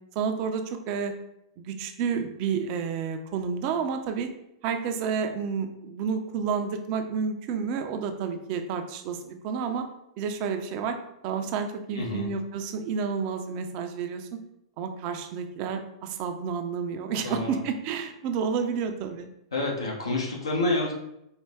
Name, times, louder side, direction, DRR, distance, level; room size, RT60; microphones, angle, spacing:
voice 1, 0.1-1.1 1.6-4.3 4.6-9.9 10.2-11.0 11.2-14.4 14.8-19.3, right 6 dB, 45° right, 6 dB, 0.5 m, -30 dB
voice 2, 11.9-12.3 17.2-17.6 19.5-20.9, left 2 dB, 80° left, -1 dB, 1.0 m, -28 dB
4.5 x 2.2 x 3.4 m, 0.83 s
figure-of-eight pair, 100°, 3 cm